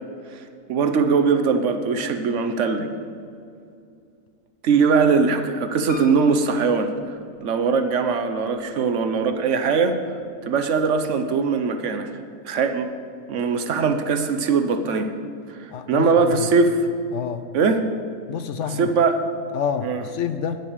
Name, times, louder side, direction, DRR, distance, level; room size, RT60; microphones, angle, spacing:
voice 1, 0.7-2.9 4.6-6.9 7.4-10.0 10.4-12.1 12.4-12.9 13.3-15.1 15.5-15.6 15.9-16.9 17.5-17.9 18.7-19.2 19.8-20.0, right 5 dB, 65° right, 8 dB, 1.0 m, -21 dB
Piano, 5.9-7.9 8.5-9.2 9.5-9.6 9.8-9.9, left 4 dB, 30° left, 1.8 m, -42 dB
voice 2, 15.7-16.5 17.1-17.4 18.3-18.9 19.5-20.6, left 7 dB, 65° left, 10 dB, 0.8 m, -28 dB
9.0 x 6.6 x 7.9 m, 2.4 s
omnidirectional pair, 1.5 m